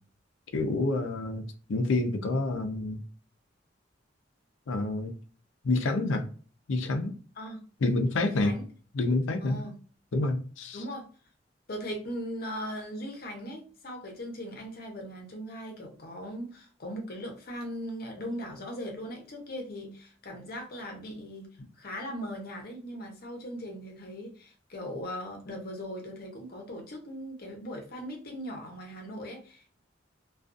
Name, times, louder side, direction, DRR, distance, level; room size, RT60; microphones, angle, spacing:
voice 1, 0.5-1.4 1.7-3.0 4.7-5.1 5.6-6.2 6.7-7.1 7.8-8.5 8.9-9.6 10.1-10.8, left 2 dB, 85° left, 6 dB, 0.5 m, -28 dB
voice 2, 8.2-8.7 9.4-9.8 10.7-11.1 11.7-29.8, equal, 50° left, 2 dB, 0.7 m, -39 dB
2.4 x 2.3 x 2.4 m, 0.40 s
head